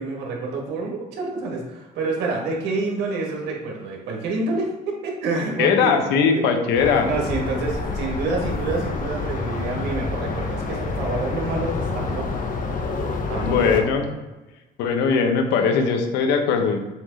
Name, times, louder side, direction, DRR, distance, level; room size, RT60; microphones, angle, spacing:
voice 1, 0.0-6.1 6.3-6.6 7.0-12.4 13.3-14.1, right 3 dB, 80° right, 0 dB, 1.7 m, -28 dB
voice 2, 5.6-7.1 13.4-14.1 14.8-16.8, left 6 dB, 90° left, 5 dB, 0.9 m, -20 dB
sound 1, 6.7-13.8, left 3 dB, 55° left, 1.0 m, -28 dB
7.4 x 3.1 x 4.0 m, 1.1 s
cardioid pair, 110°, 17 cm